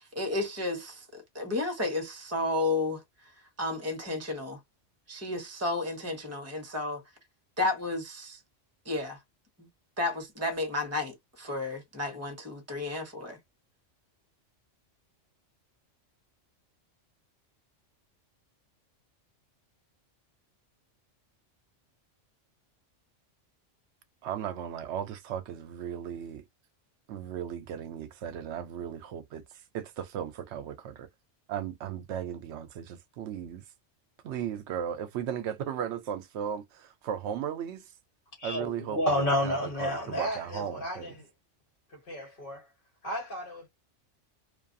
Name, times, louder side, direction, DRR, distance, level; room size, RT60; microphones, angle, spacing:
voice 1, 0.0-3.3 3.6-4.6 5.1-7.0 7.6-8.4 8.8-9.2 9.6-9.7 10.0-13.4, left 2 dB, 15° right, 0.8 m, -32 dB
voice 2, 24.2-26.4 27.1-31.1 31.5-33.6 34.2-37.9 38.4-41.2, right 9 dB, 70° right, 0.8 m, -36 dB
voice 3, 38.4-41.3 42.1-42.7 43.0-43.7, left 1 dB, 45° left, 1.5 m, -31 dB
2.5 x 2.3 x 2.5 m
omnidirectional pair, 1.3 m